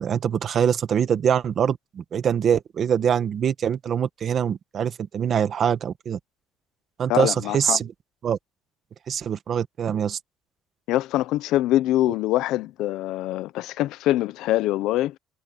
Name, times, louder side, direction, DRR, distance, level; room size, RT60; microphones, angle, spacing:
voice 1, 0.0-6.2 7.0-7.9 8.2-8.4 9.1-10.2, right 8 dB, 35° right, 1.5 m, -24 dB
voice 2, 7.1-7.8 10.9-15.2, left 15 dB, 70° left, 0.6 m, -24 dB
cardioid pair, 175°, 0 cm